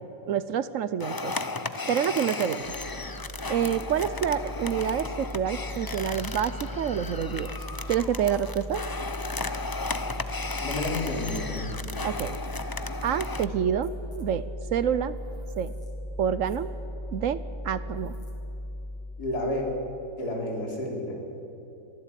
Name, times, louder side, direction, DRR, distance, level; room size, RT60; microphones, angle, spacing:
voice 1, 0.3-1.3 1.9-2.6 3.5-7.5 7.9-8.8 12.0-12.4 13.0-14.5 14.7-15.2 15.6-15.7 16.2-16.7 17.1-18.1, right 8 dB, 65° right, 15 dB, 1.0 m, -27 dB
sound 1, 1.0-13.5, left 3 dB, 30° left, 0.4 m, -35 dB
sound 2, 2.6-19.2, equal, ahead, 3.1 m, -38 dB
voice 2, 10.6-12.0 19.2-19.7 20.2-21.1, left 1 dB, 90° left, 0 dB, 4.1 m, -31 dB
24.0 x 15.5 x 9.1 m, 3.0 s
omnidirectional pair, 1.6 m